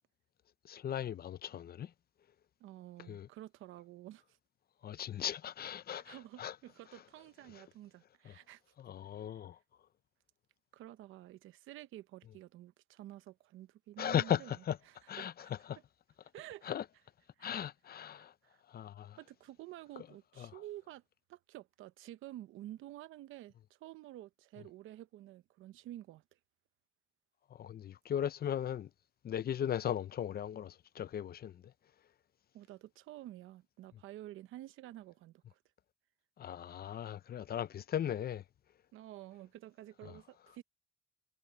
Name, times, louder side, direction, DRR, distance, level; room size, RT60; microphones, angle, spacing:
voice 1, 0.6-1.9 3.1-3.3 4.8-6.5 7.5-7.6 8.2-8.3 8.8-9.6 14.0-14.8 15.1-15.8 16.6-16.8 17.4-18.3 18.7-19.2 20.4-20.6 27.5-28.9 29.2-31.6 36.4-38.4 40.0-40.2, left 10 dB, 50° left, 0.6 m, -37 dB
voice 2, 2.6-4.4 5.2-5.3 5.9-8.6 10.7-14.5 14.8-15.5 16.3-16.7 17.4-17.5 18.1-18.6 19.2-21.0 21.3-26.2 32.5-35.6 38.9-40.6, right 14 dB, 90° right, 0.9 m, -50 dB
cardioid pair, 90°, 20 cm